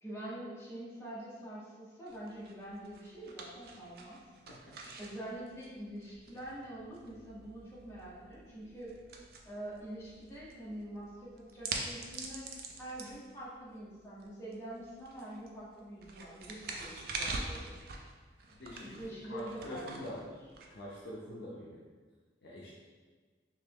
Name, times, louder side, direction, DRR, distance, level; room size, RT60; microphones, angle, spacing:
voice 1, 0.0-4.2 5.0-8.9 9.4-12.5 12.8-17.7 18.8-20.3, right 1 dB, 15° left, -8 dB, 0.8 m, -45 dB
sound 1, 2.1-21.3, right 3 dB, 55° right, 0.4 m, -46 dB
voice 2, 18.6-19.0 19.3-20.2 20.7-21.8 22.4-22.7, left 1 dB, 60° left, -6 dB, 0.5 m, -44 dB
3.3 x 2.9 x 3.5 m, 1.4 s
head